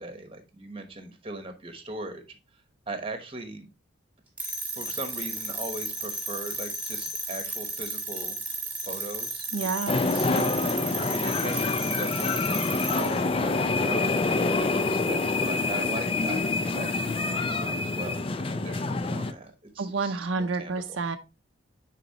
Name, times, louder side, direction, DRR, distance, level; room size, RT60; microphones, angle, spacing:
voice 1, 0.0-2.4 2.9-3.7 4.7-8.4 8.8-9.5 10.0-21.1, right 2 dB, 30° right, 7 dB, 1.1 m, -39 dB
sound 1, 4.4-13.2, right 2 dB, 10° right, 1.6 m, -34 dB
voice 2, 9.5-10.0 19.8-21.2, right 4 dB, 80° right, 7 dB, 0.6 m, -29 dB
sound 2, 9.9-19.3, left 3 dB, 30° left, 0.4 m, -26 dB
9.3 x 4.1 x 2.8 m, 0.29 s
head